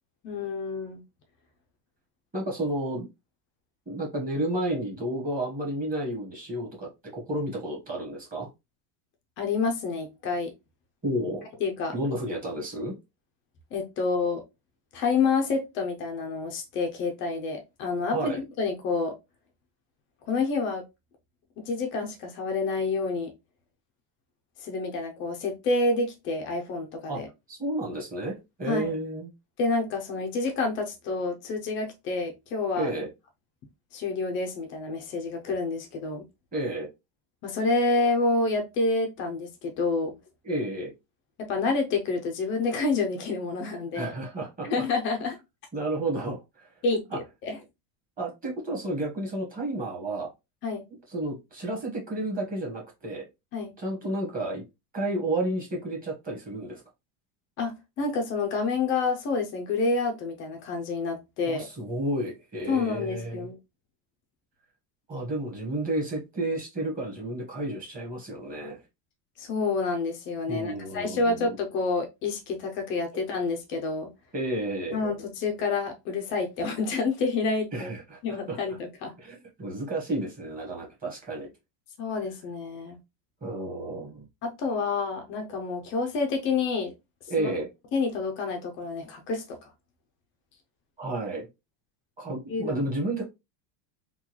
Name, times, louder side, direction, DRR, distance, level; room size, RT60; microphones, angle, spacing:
voice 1, 0.2-1.0 9.4-10.5 11.6-12.0 13.7-14.4 14.9-19.1 20.3-20.8 21.6-23.3 24.6-27.3 28.7-28.9 29.6-32.9 33.9-36.2 37.4-40.2 41.4-44.1 44.6-45.4 46.8-47.6 50.6-50.8 53.5-53.7 57.6-61.7 62.7-63.6 69.4-74.1 74.9-77.9 78.2-79.2 82.0-83.0 84.4-86.9 87.4-87.5 87.9-89.7 92.5-92.8, left 3 dB, 30° left, 0.3 m, -28 dB
voice 2, 2.3-3.1 3.9-8.5 11.0-11.5 11.9-12.9 18.1-18.4 27.1-27.2 27.5-29.3 32.8-33.1 36.5-36.9 40.4-40.9 43.9-44.8 45.7-46.7 47.1-47.2 48.2-50.3 51.1-53.3 53.8-54.6 54.9-56.8 61.5-63.5 65.1-68.8 70.5-71.6 74.3-75.0 77.7-78.8 79.2-81.5 83.4-84.2 87.3-87.7 91.0-91.5 92.2-93.2, right 1 dB, 15° right, 1.2 m, -31 dB
3.7 x 2.2 x 2.9 m
cardioid pair, 160°, 48 cm